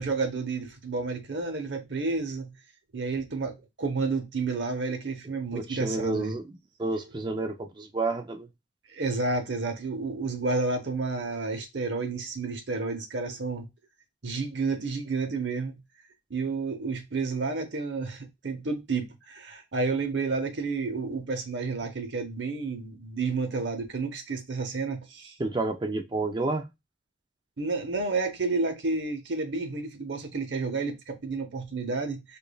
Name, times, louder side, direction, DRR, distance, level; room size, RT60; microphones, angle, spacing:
voice 1, 0.0-2.5 2.9-6.4 8.9-13.7 14.2-15.8 16.3-25.4 27.6-32.4, right 3 dB, 70° right, 0.9 m, -30 dB
voice 2, 5.5-8.5 25.4-26.7, right 2 dB, 25° right, 0.4 m, -30 dB
5.0 x 2.6 x 2.2 m
head